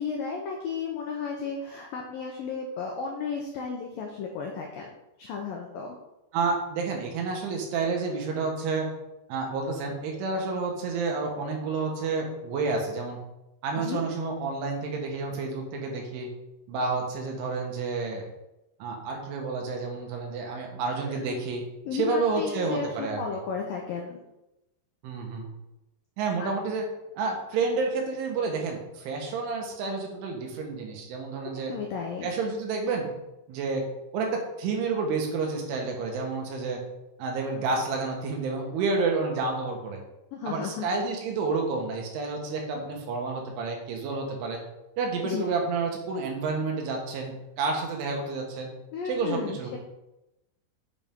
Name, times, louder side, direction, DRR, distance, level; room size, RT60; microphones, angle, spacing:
voice 1, 0.0-4.9 5.2-6.0 13.8-14.0 21.1-21.4 21.9-22.9 23.2-24.2 26.4-26.5 31.7-32.3 40.3-40.8 45.2-45.4 48.9-49.8, left 5 dB, 90° left, 1 dB, 2.0 m, -33 dB
voice 2, 6.3-8.9 9.3-13.2 13.6-16.3 16.7-18.3 18.8-21.6 21.9-23.4 25.0-25.5 26.2-26.8 27.2-31.7 32.2-33.2 33.5-33.9 34.1-36.8 37.2-40.0 40.5-44.6 45.0-48.7 49.1-49.8, right 4 dB, 90° right, 1 dB, 4.0 m, -30 dB
8.0 x 7.5 x 3.7 m, 0.93 s
omnidirectional pair, 5.3 m